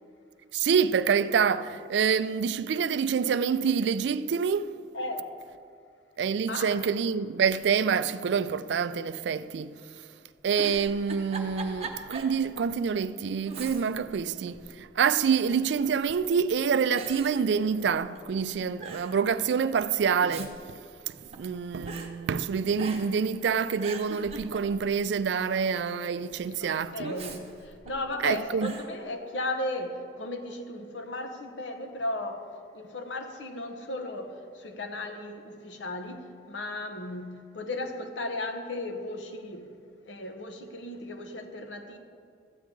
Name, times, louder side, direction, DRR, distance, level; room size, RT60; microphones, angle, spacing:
voice 1, 0.5-4.7 6.2-9.8 10.4-20.8 21.3-27.1 28.2-28.7, right 6 dB, 70° right, 0.3 m, -27 dB
voice 2, 4.9-5.3 6.5-6.8 26.6-39.7 40.1-42.0, left 2 dB, 75° left, 0.9 m, -36 dB
Giggle, 10.4-12.4 12.8-12.9 13.4-14.1 14.5-15.3 16.0-16.4 17.0-18.2 18.5-18.6 18.8-19.2 20.0-21.5 21.9-22.1 22.8-23.2 23.6-25.0 27.0-28.2 28.6-28.9, right 3 dB, 35° right, 0.9 m, -41 dB
13.5 x 8.4 x 3.8 m
head